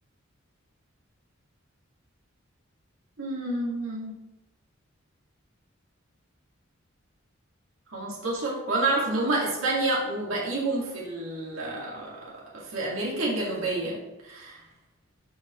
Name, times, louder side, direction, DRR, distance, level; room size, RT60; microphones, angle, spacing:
voice 1, 3.2-4.1 7.9-12.2 12.7-14.0 14.2-14.6, right 2 dB, 85° right, -5 dB, 2.0 m, -28 dB
11.0 x 4.8 x 3.1 m, 1.0 s
head